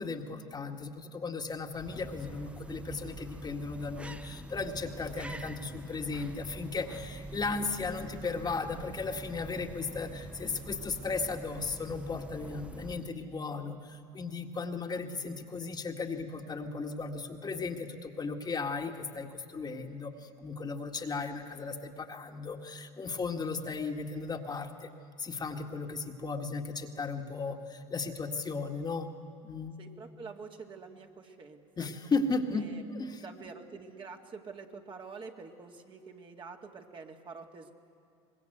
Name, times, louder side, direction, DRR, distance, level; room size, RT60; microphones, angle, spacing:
voice 1, 0.0-24.9 25.2-29.1 29.4-29.8 31.8-33.2, left 4 dB, 25° left, 3 dB, 1.9 m, -36 dB
sound 1, 1.5-13.3, right 2 dB, 10° right, 0.8 m, -45 dB
voice 2, 29.8-31.9 32.5-32.8 33.2-37.7, right 4 dB, 35° right, 2 dB, 2.2 m, -47 dB
24.5 x 20.5 x 8.0 m, 2.5 s
hypercardioid pair, 85°, 15 cm